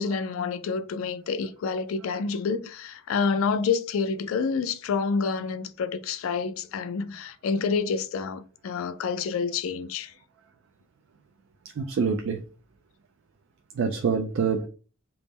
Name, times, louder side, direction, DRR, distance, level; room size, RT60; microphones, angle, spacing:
voice 1, 0.0-10.1, left 5 dB, 70° left, 0.3 m, -28 dB
voice 2, 11.8-12.4 13.8-14.7, right 5 dB, 60° right, 0.3 m, -25 dB
3.5 x 2.0 x 4.0 m
head